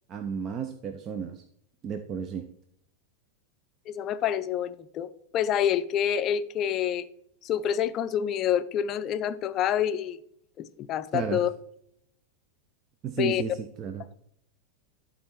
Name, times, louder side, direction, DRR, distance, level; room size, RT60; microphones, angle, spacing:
voice 1, 0.1-1.4 1.8-2.4 11.1-11.4 13.0-14.0, right 7 dB, 30° right, 0.5 m, -33 dB
voice 2, 3.9-7.0 7.4-10.2 10.6-11.5 13.2-13.4, left 9 dB, 35° left, 0.5 m, -27 dB
12.0 x 4.0 x 4.3 m
figure-of-eight pair, 90°, 0 cm